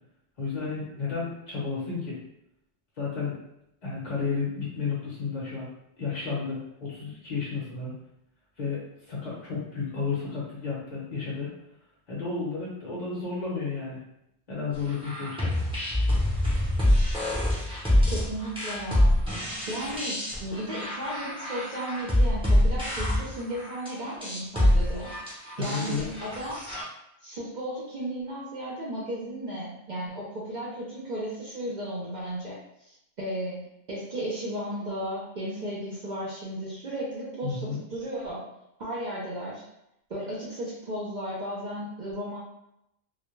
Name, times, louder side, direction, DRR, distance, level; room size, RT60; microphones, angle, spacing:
voice 1, 0.4-2.2 3.0-3.4 3.8-5.7 6.0-7.9 8.6-8.8 9.1-11.5 12.1-14.0 14.5-15.5 25.6-26.0 37.4-37.8, left 4 dB, 45° left, -6 dB, 0.7 m, -32 dB
sound 1, 14.9-26.8, left 1 dB, 5° right, 0.5 m, -25 dB
voice 2, 18.1-19.2 19.6-25.1 25.6-26.6 27.2-33.6 33.9-38.5 38.8-39.6 40.1-42.4, right 1 dB, 50° right, -6 dB, 0.6 m, -35 dB
2.2 x 2.1 x 3.0 m, 0.82 s
omnidirectional pair, 1.2 m